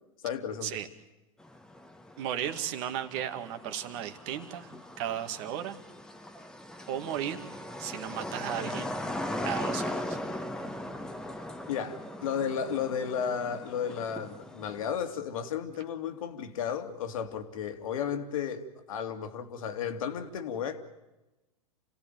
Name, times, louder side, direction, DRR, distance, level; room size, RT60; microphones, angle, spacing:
voice 1, 0.2-0.7 11.7-20.8, left 7 dB, 70° left, 8 dB, 2.5 m, -33 dB
sound 1, 1.4-14.9, left 1 dB, 5° left, 1.4 m, -39 dB
voice 2, 2.2-5.8 6.9-7.4 7.8-8.9 9.4-10.2, right 10 dB, 50° right, 7 dB, 2.2 m, -35 dB
28.0 x 16.5 x 9.3 m, 1.1 s
hypercardioid pair, 115°, 18 cm